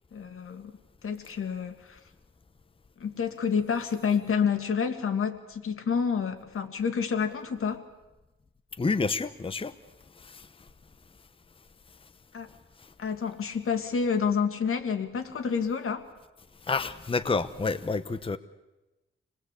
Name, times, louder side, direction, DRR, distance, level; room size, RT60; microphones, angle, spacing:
voice 1, 0.1-0.7 1.0-2.0 3.0-7.9 12.3-12.5 13.0-16.0, left 6 dB, 85° left, 6 dB, 2.2 m, -29 dB
voice 2, 8.8-9.7 10.1-10.7 12.5-12.9 16.6-18.4, left 4 dB, 25° left, 11 dB, 0.8 m, -30 dB
27.0 x 19.5 x 8.3 m, 1.0 s
wide cardioid pair, 130°, 21 cm